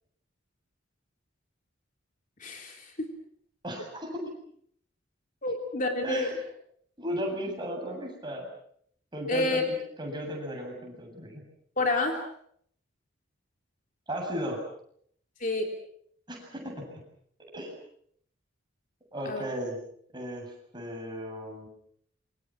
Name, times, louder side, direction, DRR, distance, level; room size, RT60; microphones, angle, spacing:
voice 1, 2.4-2.9 5.4-6.3 9.3-9.6 11.8-12.2 15.4-15.7 19.3-19.4, left 2 dB, 40° left, 3 dB, 3.4 m, -28 dB
voice 2, 3.6-4.1 6.0-6.3 7.0-8.5 9.1-11.4 14.1-14.6 16.3-17.0 17.5-17.7 19.1-19.8 20.1-21.7, equal, 20° right, 1 dB, 7.9 m, -35 dB
28.0 x 25.0 x 6.1 m, 0.65 s
head